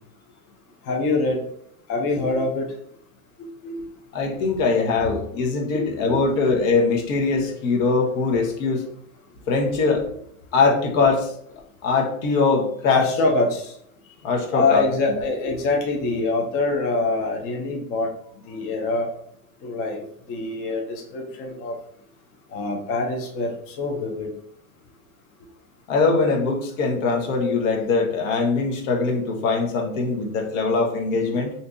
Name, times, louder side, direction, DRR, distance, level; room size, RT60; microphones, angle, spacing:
voice 1, 0.9-1.4 1.9-2.7 3.6-3.8 5.0-5.1 6.1-6.2 12.9-13.7 14.5-18.1 18.5-19.1 19.6-20.0 20.3-21.7 22.5-23.5 23.8-24.3, left 3 dB, 30° left, 1 dB, 0.6 m, -24 dB
voice 2, 4.1-8.8 9.5-10.0 10.5-11.3 11.8-13.1 14.2-14.8 15.1-15.2 25.9-31.5, left 4 dB, 60° left, 1 dB, 1.1 m, -22 dB
2.8 x 2.6 x 3.6 m, 0.69 s
supercardioid pair, 130°, 43 cm